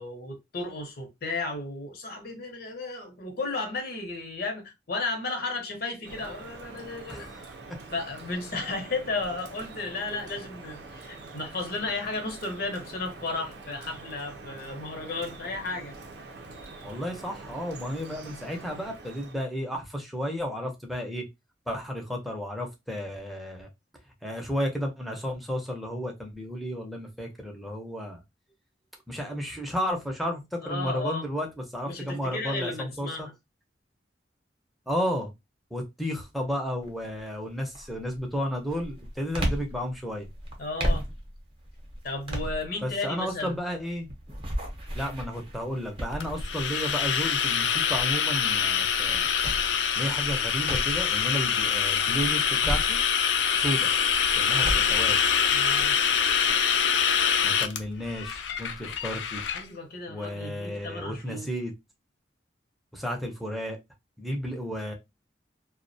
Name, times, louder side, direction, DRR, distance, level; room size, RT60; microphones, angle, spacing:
voice 1, 0.0-7.3 7.9-15.9 30.6-31.3 31.8-33.3 40.6-41.1 42.0-43.6 55.5-56.0 59.5-61.5, left 3 dB, 60° left, 0.7 m, -34 dB
Drip, 6.0-19.4, right 3 dB, 70° right, 0.5 m, -45 dB
voice 2, 7.1-7.8 16.8-21.2 21.7-23.7 24.2-28.2 29.1-31.5 31.7-33.3 34.9-35.3 35.7-40.3 42.8-44.1 44.9-49.3 49.9-53.0 53.5-53.9 54.4-55.2 57.4-59.4 60.1-61.7 62.9-63.8 64.2-64.9, equal, ahead, 0.6 m, -33 dB
sound 1, 36.8-37.2 37.7-51.2 51.7-53.5 53.9-56.5, equal, 35° right, 0.7 m, -35 dB
sound 2, 46.2-59.6, left 7 dB, 80° left, 0.4 m, -25 dB
2.3 x 2.1 x 2.6 m
head